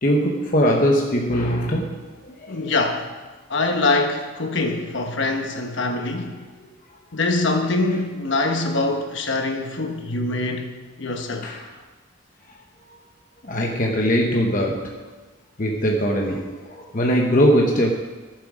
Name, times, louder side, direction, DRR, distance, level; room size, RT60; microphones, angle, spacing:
voice 1, 0.0-2.7 11.4-11.7 13.4-15.0 15.6-17.9, equal, 40° left, 0 dB, 0.9 m, -21 dB
voice 2, 2.5-3.1 3.5-6.4 7.1-10.7 11.0-11.5, left 2 dB, 60° left, 4 dB, 1.2 m, -24 dB
14.0 x 7.6 x 4.9 m, 1.3 s
head